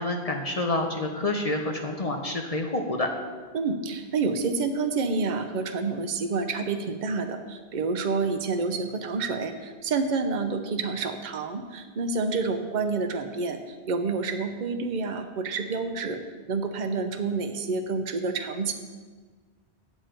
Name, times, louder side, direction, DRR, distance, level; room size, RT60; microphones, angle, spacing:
voice 1, 0.0-3.1, left 2 dB, 40° left, 3 dB, 0.7 m, -28 dB
voice 2, 3.5-16.2 16.5-18.7, right 4 dB, 50° right, 6 dB, 0.8 m, -28 dB
9.0 x 7.2 x 4.4 m, 1.4 s
omnidirectional pair, 1.1 m